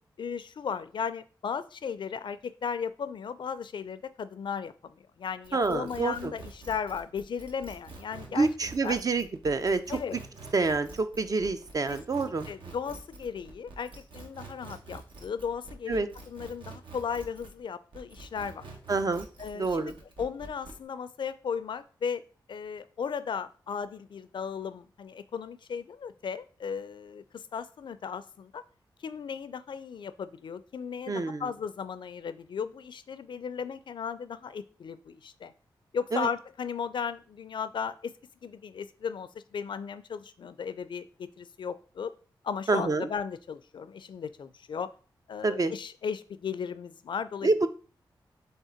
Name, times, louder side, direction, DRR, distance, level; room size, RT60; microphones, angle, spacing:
voice 1, 0.2-8.5 8.8-9.0 9.9-10.2 11.9-18.6 19.4-22.2 22.5-28.6 29.0-35.5 35.9-38.1 38.4-42.1 42.4-44.9 45.3-47.5, left 6 dB, 65° left, 14 dB, 0.4 m, -36 dB
sound 1, 5.4-17.6 17.9-20.8, right 3 dB, 75° right, 1.0 m, -47 dB
voice 2, 5.5-6.3 8.3-10.0 10.5-12.5 15.9-16.1 18.9-19.3 19.5-19.9 31.1-31.4 36.1-36.3 42.7-43.1 45.4-45.7 47.4-47.7, right 3 dB, 45° right, 10 dB, 0.5 m, -27 dB
3.6 x 3.3 x 4.3 m, 0.39 s
cardioid pair, 45°, 9 cm